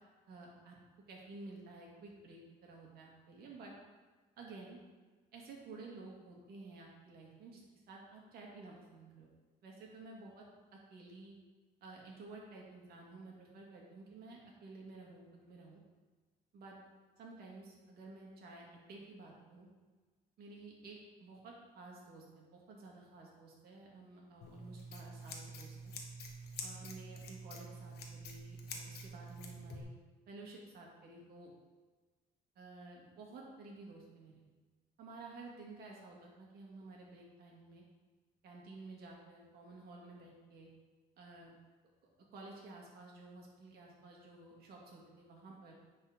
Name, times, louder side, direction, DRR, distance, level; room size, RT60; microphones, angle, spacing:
voice 1, 0.3-0.8 1.1-3.7 4.4-4.8 5.3-9.3 9.6-10.4 10.7-11.3 11.8-15.8 16.5-16.8 17.2-19.7 20.4-25.9 26.6-29.9 30.3-31.5 32.6-34.4 35.0-37.8 38.4-40.7 41.2-41.6 42.3-45.8, right 3 dB, 65° right, -2 dB, 2.2 m, -53 dB
Scissors, 24.4-29.8, equal, 75° left, 1.2 m, -47 dB
9.8 x 4.4 x 4.0 m, 1.3 s
cardioid pair, 110°, 17 cm